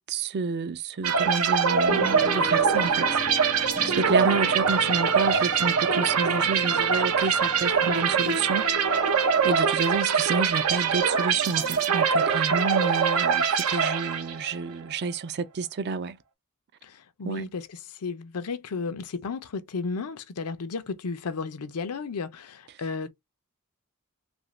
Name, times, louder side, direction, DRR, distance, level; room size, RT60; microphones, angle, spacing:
voice 1, 0.0-3.2 3.5-8.7 9.4-16.2 17.2-17.4, right 4 dB, 50° right, 0.4 m, -29 dB
sound 1, 1.0-14.6, right 6 dB, 80° right, 0.7 m, -23 dB
sound 2, 1.9-11.9, left 3 dB, 25° left, 0.4 m, -40 dB
voice 2, 16.8-23.1, left 4 dB, 80° left, 0.5 m, -33 dB
2.8 x 2.5 x 3.0 m
head